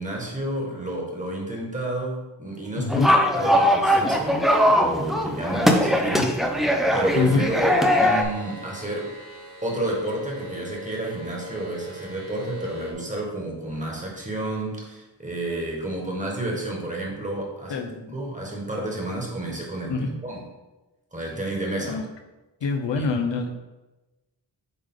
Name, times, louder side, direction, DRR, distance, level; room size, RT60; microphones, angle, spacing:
voice 1, 0.0-3.1 3.3-4.4 4.7-6.3 6.9-9.1 9.6-17.9 18.1-20.4 21.1-22.0 23.0-23.1, right 1 dB, 15° right, -2 dB, 1.5 m, -30 dB
voice 2, 2.7-3.1 6.2-6.3 7.1-7.5 17.7-18.2 19.9-20.1 21.8-22.1 22.6-23.5, left 4 dB, 75° left, 5 dB, 0.7 m, -25 dB
sound 1, 2.9-8.2, equal, ahead, 0.5 m, -20 dB
sound 2, 7.0-12.9, left 1 dB, 60° right, 1.5 m, -40 dB
8.5 x 3.6 x 3.7 m, 1.1 s
wide cardioid pair, 130°, 44 cm